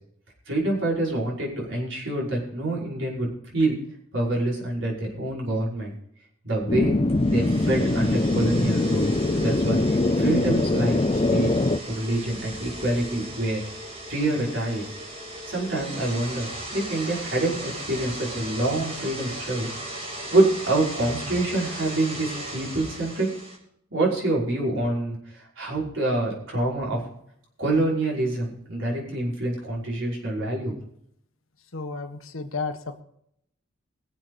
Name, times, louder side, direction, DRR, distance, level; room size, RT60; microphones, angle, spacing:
voice 1, 0.5-3.8 4.1-5.9 6.4-7.0 7.3-9.1 9.4-11.5 11.9-13.6 14.1-14.9 15.5-20.0 20.3-23.3 23.9-27.0 27.6-30.7, right 2 dB, 60° right, -4 dB, 5.6 m, -26 dB
sound 1, 6.7-11.8, left 2 dB, 25° left, 0.5 m, -22 dB
sound 2, 7.0-23.6, right 1 dB, 30° right, 3.2 m, -37 dB
voice 2, 31.7-33.0, left 4 dB, 80° left, 6 dB, 1.6 m, -32 dB
22.0 x 7.9 x 4.1 m, 0.73 s
head